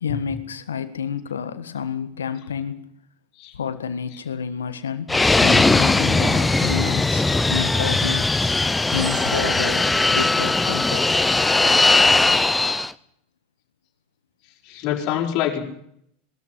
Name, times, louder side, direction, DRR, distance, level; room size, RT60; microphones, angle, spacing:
voice 1, 0.0-2.8 3.5-8.3 8.9-11.0, left 7 dB, 85° left, 1.7 m, -29 dB
Fixed-wing aircraft airplane, 5.1-12.9, left 3 dB, 10° left, 0.9 m, -19 dB
sound 1, 6.2-6.8 8.3-10.1, right 7 dB, 80° right, 3.0 m, -39 dB
voice 2, 14.7-15.6, left 10 dB, 50° left, 5.0 m, -26 dB
20.5 x 13.5 x 9.7 m
hypercardioid pair, 85°, 0 cm